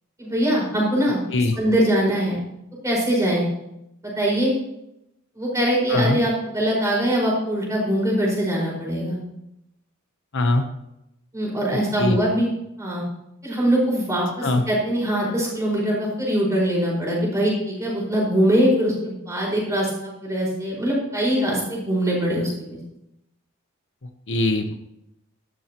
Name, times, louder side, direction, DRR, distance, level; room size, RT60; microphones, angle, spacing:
voice 1, 0.2-1.2 1.5-2.4 2.8-3.4 4.2-4.5 5.4-9.2 11.3-12.5 12.8-13.0 13.4-22.8, equal, 15° right, -4 dB, 5.4 m, -22 dB
voice 2, 10.3-10.6 12.0-12.2 14.4-14.6 24.3-24.7, left 2 dB, 55° left, 6 dB, 1.0 m, -21 dB
12.5 x 12.5 x 3.1 m, 0.83 s
head